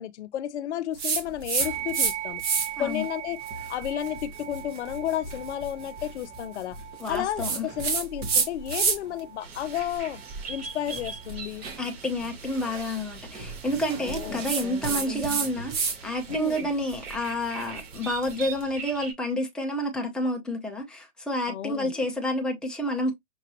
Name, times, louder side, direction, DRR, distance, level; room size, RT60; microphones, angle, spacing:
voice 1, 0.0-2.4 2.8-3.4 3.7-6.8 7.1-10.2 10.5-11.7 14.0-14.4 16.3-16.7 21.5-21.9, left 11 dB, 65° left, 0.5 m, -32 dB
sound 1, 1.0-2.1 2.4-2.9 3.4-9.2 9.5-16.0 16.3-18.5, right 5 dB, 25° right, 1.2 m, -31 dB
sound 2, 1.6-11.3, right 11 dB, 75° right, 1.5 m, -40 dB
voice 2, 7.0-7.7 11.8-23.1, left 1 dB, ahead, 0.6 m, -29 dB
sound 3, 9.4-19.1, right 5 dB, 55° right, 2.9 m, -42 dB
5.9 x 2.7 x 3.0 m
hypercardioid pair, 140°, 37 cm